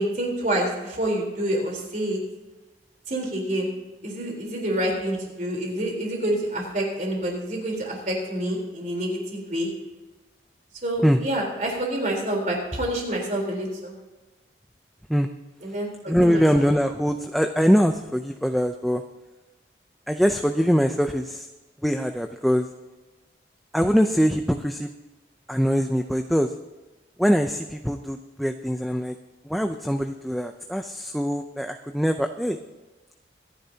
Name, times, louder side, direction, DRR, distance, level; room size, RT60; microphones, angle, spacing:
voice 1, 0.0-2.2 3.1-3.7 4.0-9.7 10.8-13.9 15.6-16.7, right 1 dB, 45° right, 0 dB, 3.8 m, -27 dB
voice 2, 16.1-19.0 20.1-21.4 21.8-22.7 23.7-24.9 25.5-26.5 27.2-29.1 29.5-32.6, equal, ahead, 5 dB, 0.5 m, -22 dB
25.5 x 10.5 x 2.8 m, 1.2 s
head